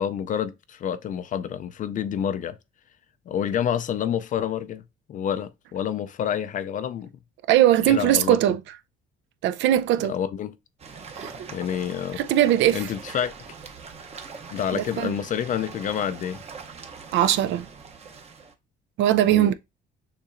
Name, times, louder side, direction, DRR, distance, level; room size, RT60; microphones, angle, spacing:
voice 1, 0.0-2.6 3.3-4.8 5.1-7.1 7.8-8.4 10.0-10.5 11.5-12.2 12.7-13.3 14.5-16.4 19.3-19.5, left 9 dB, 40° left, 0.4 m, -28 dB
voice 2, 7.5-8.6 9.4-10.1 11.2-11.3 12.2-12.9 14.7-15.1 17.1-17.7 19.0-19.5, right 12 dB, 70° right, 0.5 m, -20 dB
sound 1, 10.8-18.5, right 5 dB, 30° right, 0.8 m, -42 dB
6.6 x 2.9 x 2.5 m
cardioid pair, 135°, 20 cm